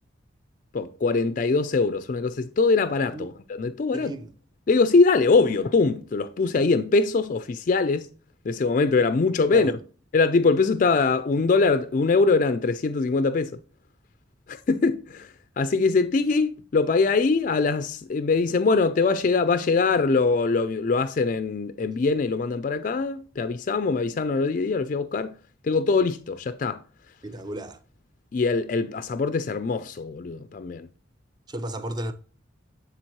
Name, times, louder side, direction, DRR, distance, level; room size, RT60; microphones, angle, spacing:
voice 1, 0.7-4.1 4.7-8.1 8.4-9.7 10.1-13.6 14.5-15.3 15.6-25.4 25.6-26.8 28.3-30.9, left 4 dB, 40° left, 0.3 m, -22 dB
voice 2, 3.9-4.3 9.5-9.7 27.2-27.8 31.5-32.1, right 1 dB, 20° right, 0.4 m, -33 dB
9.0 x 4.0 x 3.0 m
head